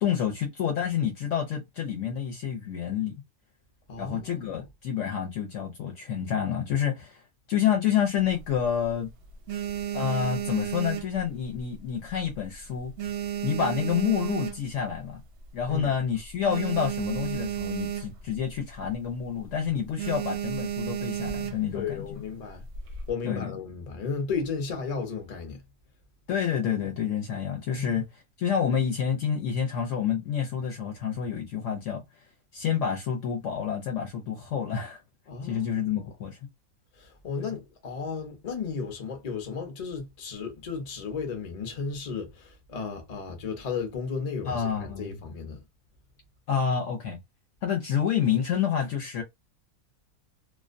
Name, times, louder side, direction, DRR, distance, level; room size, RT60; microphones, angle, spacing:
voice 1, 0.0-3.1 4.0-7.2 7.5-9.1 9.9-12.9 13.4-15.2 15.5-22.1 23.2-23.5 26.3-32.0 32.5-35.0 35.4-36.4 37.4-37.5 44.4-45.2 46.5-47.2 47.6-49.2, left 8 dB, 65° left, 0.8 m, -28 dB
voice 2, 3.9-4.6 15.7-15.9 21.7-22.6 23.1-25.6 27.7-28.0 35.3-35.9 37.0-45.6, left 5 dB, 45° left, 0.5 m, -34 dB
sound 1, 8.2-8.9 9.3-11.8 12.1-12.5 12.7-15.0 15.5-15.6 15.7-15.9 16.2-18.4 18.7-18.9 19.3-19.5 20.0-21.8 22.5-23.1, right 10 dB, 65° right, 0.7 m, -33 dB
2.4 x 2.1 x 2.5 m
omnidirectional pair, 1.5 m